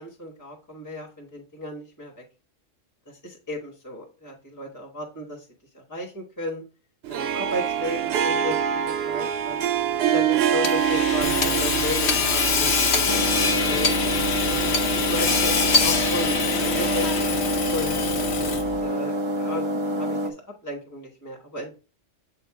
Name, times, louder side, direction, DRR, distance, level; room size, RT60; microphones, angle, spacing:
voice 1, 0.0-2.2 3.2-5.4 5.7-6.6 7.1-8.6 8.8-9.6 10.0-13.9 14.5-17.1 17.7-18.0 18.4-20.3 20.6-21.7, equal, 15° left, -2 dB, 1.1 m, -34 dB
Harp, 7.0-15.3, right 9 dB, 65° right, 0.7 m, -26 dB
Hammer / Sawing, 10.6-18.8, left 4 dB, 60° left, 1.1 m, -24 dB
sound 1, 13.1-20.3, equal, 40° right, 0.4 m, -27 dB
7.7 x 2.9 x 4.7 m, 0.35 s
omnidirectional pair, 1.3 m